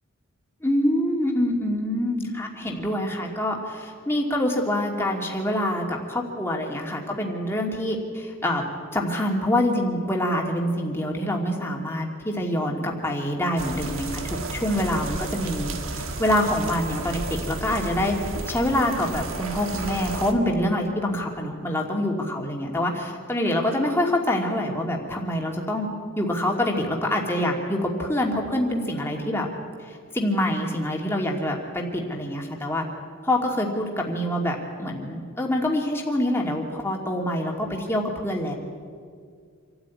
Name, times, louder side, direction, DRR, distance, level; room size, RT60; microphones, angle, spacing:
voice 1, 0.6-8.6 8.9-18.1 18.5-25.9 26.2-29.5 29.9-32.9 33.2-38.5, left 1 dB, 10° left, 0 dB, 2.6 m, -26 dB
sound 1, 13.6-20.3, right 2 dB, 60° right, 1.7 m, -33 dB
26.5 x 13.0 x 9.5 m, 2.1 s
head